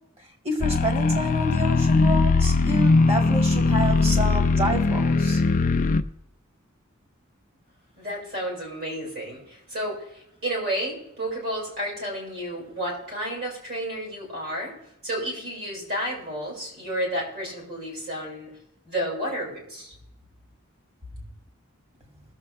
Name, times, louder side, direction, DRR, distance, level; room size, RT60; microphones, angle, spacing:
voice 1, 0.4-5.4, equal, 30° right, 2 dB, 2.4 m, -28 dB
sound 1, 0.6-6.0, left 3 dB, 40° left, 0.5 m, -20 dB
voice 2, 8.0-14.7 15.0-18.5 18.9-20.0, right 1 dB, 50° right, -3 dB, 5.3 m, -31 dB
19.0 x 7.5 x 3.4 m, 0.78 s
head